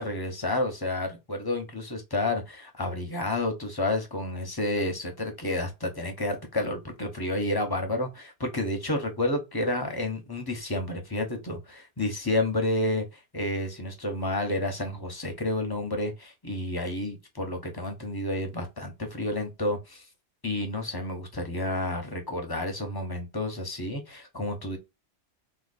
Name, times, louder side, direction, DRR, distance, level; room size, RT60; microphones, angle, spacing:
voice 1, 0.0-13.1 13.3-20.0 20.4-24.8, left 1 dB, 25° left, 0.7 m, -30 dB
3.7 x 2.4 x 2.4 m
omnidirectional pair, 1.2 m